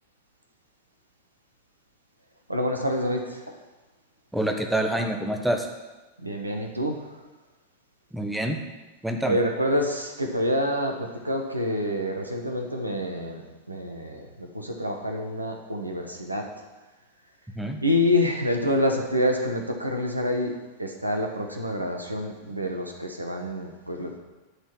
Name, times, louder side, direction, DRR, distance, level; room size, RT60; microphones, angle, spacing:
voice 1, 2.5-3.6 6.2-7.2 9.2-16.5 17.8-20.5 20.8-24.2, left 1 dB, 85° right, 3 dB, 1.2 m, -27 dB
voice 2, 4.3-5.7 8.1-8.6 9.0-9.4 17.6-17.8, right 1 dB, 5° right, 3 dB, 1.1 m, -26 dB
11.5 x 4.3 x 7.6 m, 1.1 s
figure-of-eight pair, 90°, 0 cm